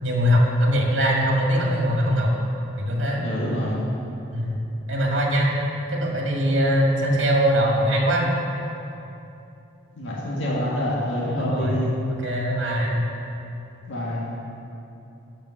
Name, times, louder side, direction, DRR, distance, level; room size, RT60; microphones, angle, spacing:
voice 1, 0.0-2.3 2.8-3.2 4.3-4.6 4.9-5.5 5.9-8.3 11.4-13.0, equal, 70° right, -1 dB, 1.8 m, -22 dB
voice 2, 3.2-3.9 9.9-11.9 13.9-14.3, equal, 80° left, -6 dB, 1.8 m, -26 dB
12.0 x 5.2 x 6.3 m, 2.8 s
head